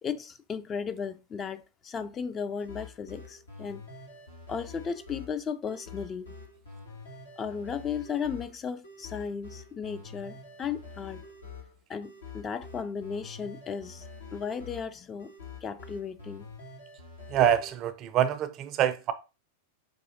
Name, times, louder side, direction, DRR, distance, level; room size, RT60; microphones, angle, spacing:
voice 1, 0.0-3.8 4.5-6.3 7.4-11.2 11.9-15.3 15.6-16.5, left 6 dB, 25° left, 0.4 m, -35 dB
sound 1, 2.6-17.8, left 4 dB, 85° left, 1.1 m, -46 dB
voice 2, 17.3-19.1, right 10 dB, 40° right, 0.4 m, -25 dB
4.7 x 2.7 x 2.7 m
figure-of-eight pair, 95°, 0 cm